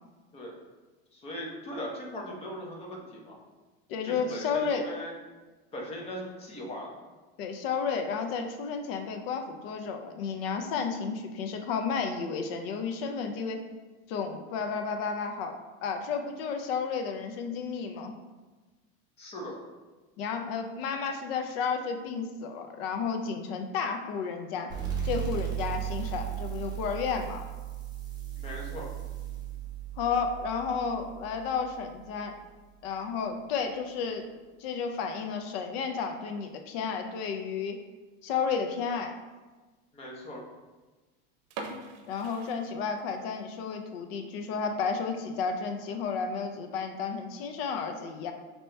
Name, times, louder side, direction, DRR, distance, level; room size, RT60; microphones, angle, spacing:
voice 1, 1.1-3.4 4.0-5.1 5.7-7.1 19.2-19.6 28.4-28.9 39.9-40.4, equal, 20° left, -1 dB, 0.7 m, -39 dB
voice 2, 3.9-4.9 7.4-13.6 14.1-18.1 20.2-24.7 25.0-27.4 30.0-32.4 32.8-34.2 34.6-37.8 38.2-39.1 42.1-48.3, left 5 dB, 75° left, 5 dB, 0.6 m, -32 dB
sound 1, 24.7-32.0, right 10 dB, 15° right, 0.8 m, -36 dB
sound 2, 41.4-43.3 43.7-43.8 44.3-44.5 44.9-45.0 45.3-45.4 46.1-46.4, right 3 dB, 70° right, 0.7 m, -43 dB
5.4 x 2.9 x 3.3 m, 1.2 s
cardioid pair, 170°, 30 cm